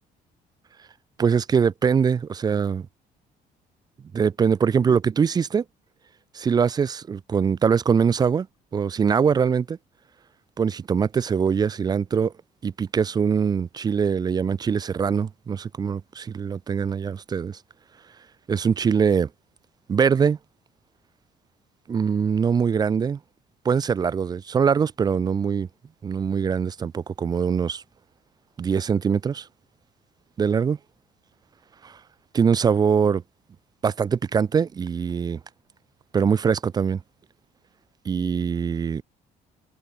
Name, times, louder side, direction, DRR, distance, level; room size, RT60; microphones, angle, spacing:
voice 1, 1.2-2.9 4.1-5.6 6.3-8.5 8.7-9.8 10.6-12.3 12.6-17.6 18.5-19.3 19.9-20.4 21.9-23.2 23.6-25.7 26.0-27.8 28.6-29.5 30.4-30.8 31.8-32.0 32.3-33.2 33.8-35.4 36.1-37.0 38.1-39.0, right 6 dB, 25° right, 0.3 m, -22 dB
cardioid pair, 110°, 17 cm